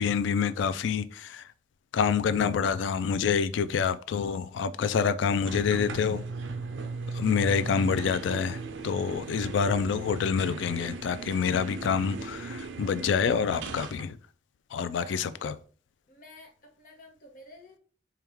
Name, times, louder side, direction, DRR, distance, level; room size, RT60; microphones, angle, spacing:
voice 1, 0.0-1.4 1.9-6.2 7.1-14.2 14.7-15.5, left 6 dB, 70° left, 0.3 m, -27 dB
sound 1, 5.5-14.0, right 4 dB, 75° right, 0.4 m, -38 dB
voice 2, 15.0-15.3 16.1-17.8, left 1 dB, 45° left, 1.0 m, -51 dB
4.5 x 2.3 x 3.4 m
head